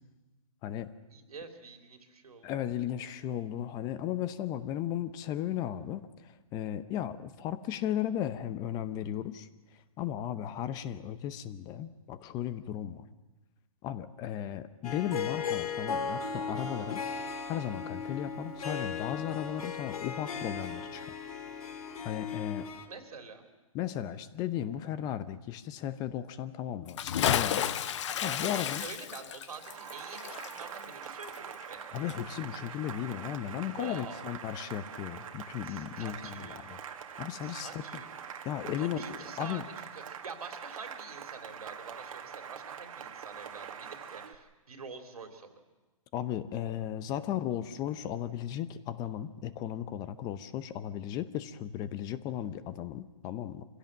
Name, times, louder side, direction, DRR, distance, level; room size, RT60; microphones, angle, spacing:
voice 1, 1.1-2.5 22.9-23.5 28.2-31.9 33.7-34.2 35.6-36.6 37.4-38.1 38.8-45.5, right 4 dB, 90° right, 5 dB, 3.2 m, -46 dB
voice 2, 2.4-9.5 9.7-13.1 13.8-17.0 17.5-21.1 22.0-22.7 23.7-27.7 28.2-28.8 31.9-36.8 37.2-37.8 38.4-39.6 46.1-53.7, left 11 dB, 20° left, 14 dB, 0.7 m, -35 dB
Harp, 14.8-22.8, left 5 dB, 80° left, 2.3 m, -37 dB
Bathtub (filling or washing) / Splash splatter, 26.8-31.8 32.1-32.2, left 10 dB, 55° left, 0.9 m, -32 dB
Cheering / Applause, 29.5-44.4, right 8 dB, 70° right, 1.7 m, -44 dB
25.0 x 16.5 x 7.5 m, 1.2 s
hypercardioid pair, 150°, 18 cm